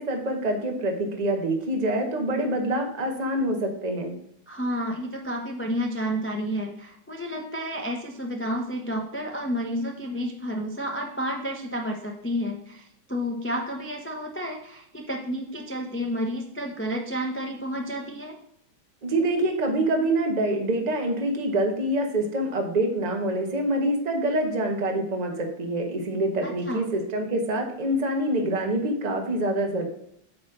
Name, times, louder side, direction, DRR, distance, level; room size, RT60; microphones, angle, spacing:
voice 1, 0.0-4.2 19.0-29.9, right 1 dB, 25° right, 2 dB, 1.1 m, -26 dB
voice 2, 4.5-18.3 26.4-26.8, equal, 20° left, 1 dB, 0.3 m, -31 dB
8.6 x 3.2 x 6.4 m, 0.73 s
omnidirectional pair, 2.0 m